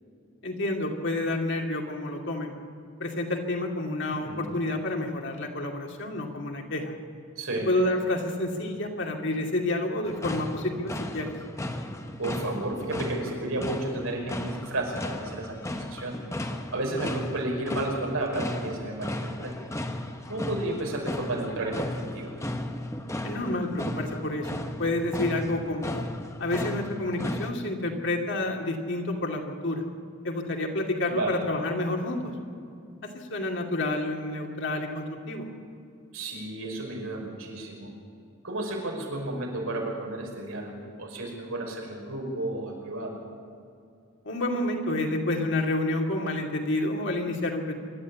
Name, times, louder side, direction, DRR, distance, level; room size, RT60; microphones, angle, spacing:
voice 1, 0.4-2.5 3.0-6.9 7.7-11.3 23.2-26.0 26.4-29.8 30.2-32.2 33.1-35.4 44.2-47.7, left 2 dB, 55° left, 1 dB, 2.7 m, -29 dB
voice 2, 4.1-4.4 7.4-7.7 12.2-16.2 16.7-19.7 20.3-22.3 31.1-31.4 36.1-37.9 38.4-43.1, right 2 dB, 85° right, 0 dB, 5.6 m, -32 dB
sound 1, 10.0-27.5, left 1 dB, 15° left, 1.0 m, -35 dB
26.0 x 12.5 x 8.6 m, 2.4 s
head